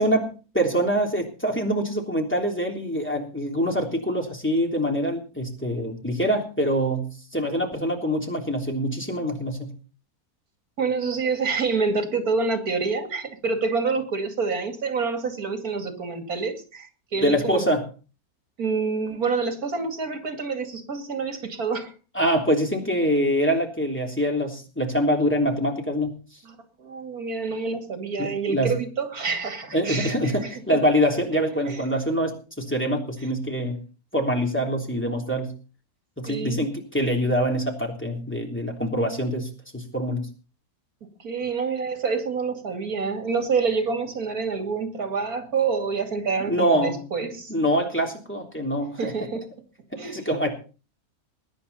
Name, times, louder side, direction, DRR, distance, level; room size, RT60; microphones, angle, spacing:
voice 1, 0.0-9.7 17.2-17.8 22.1-26.2 28.2-28.7 29.7-33.8 34.1-35.5 36.2-40.3 46.5-47.0 47.5-49.1 49.9-50.5, equal, 5° left, 1 dB, 3.4 m, -25 dB
voice 2, 10.8-17.7 18.6-21.9 26.4-30.8 31.7-31.8 36.3-36.7 41.2-47.5 49.0-49.4 50.0-50.2, right 4 dB, 75° right, 7 dB, 2.8 m, -27 dB
21.5 x 10.0 x 4.2 m, 0.35 s
omnidirectional pair, 1.6 m